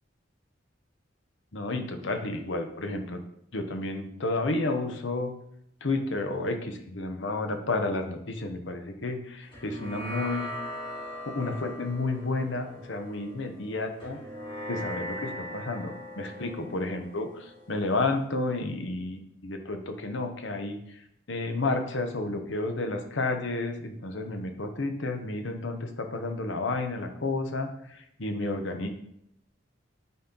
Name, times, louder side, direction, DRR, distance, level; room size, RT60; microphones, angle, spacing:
voice 1, 1.5-3.2 3.5-5.3 5.8-10.5 11.3-14.2 14.7-21.0 21.3-28.9, left 2 dB, 70° left, 5 dB, 1.0 m, -31 dB
sound 1, 9.5-18.2, equal, 25° left, 2.2 m, -40 dB
9.3 x 4.3 x 3.9 m, 0.74 s
head